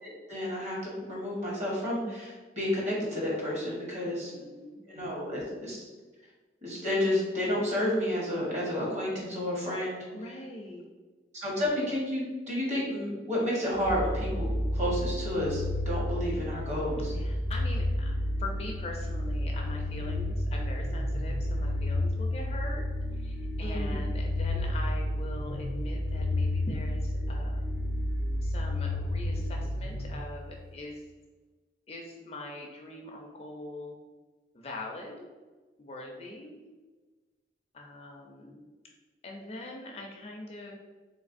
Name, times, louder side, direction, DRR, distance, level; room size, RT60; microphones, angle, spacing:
voice 1, 0.0-4.3 4.9-5.8 6.6-10.0 11.3-17.1 23.6-24.0, left 1 dB, 40° right, -4 dB, 1.1 m, -31 dB
voice 2, 4.0-5.5 10.1-10.9 17.1-22.8 23.2-27.8 28.4-31.0 31.9-34.0 34.5-35.3 35.8-36.6 37.7-38.6 39.2-40.7, left 2 dB, 35° left, 0 dB, 0.4 m, -42 dB
sound 1, 13.8-30.6, left 1 dB, 80° right, 0.9 m, -31 dB
3.2 x 3.2 x 2.5 m, 1.3 s
head